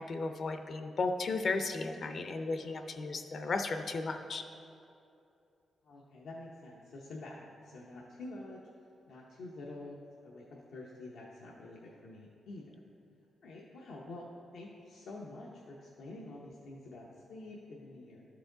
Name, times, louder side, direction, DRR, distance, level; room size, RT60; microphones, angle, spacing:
voice 1, 0.0-4.4, left 3 dB, 55° left, 6 dB, 0.6 m, -35 dB
voice 2, 5.8-8.6 9.1-10.0 10.2-12.8 13.4-14.3 14.5-18.3, left 2 dB, 85° left, -4 dB, 0.8 m, -48 dB
13.0 x 4.8 x 3.8 m, 2.7 s
cardioid pair, 90°, 0 cm